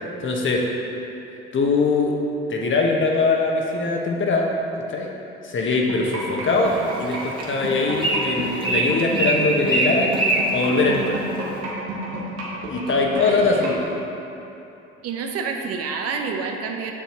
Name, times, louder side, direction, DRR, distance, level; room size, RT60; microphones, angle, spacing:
voice 1, 0.2-0.6 1.5-2.1 2.5-4.5 4.9-5.1 5.4-10.2 10.5-11.2 12.7-13.9, left 3 dB, 40° left, 0 dB, 1.2 m, -22 dB
sound 1, 5.9-13.8, right 3 dB, 85° right, 1.2 m, -31 dB
Bird, 6.5-11.6, right 1 dB, 15° right, 1.5 m, -26 dB
voice 2, 12.9-13.7 15.0-16.9, right 5 dB, 55° right, 3 dB, 0.8 m, -29 dB
7.4 x 7.0 x 3.0 m, 3.0 s
hypercardioid pair, 60°, 30 cm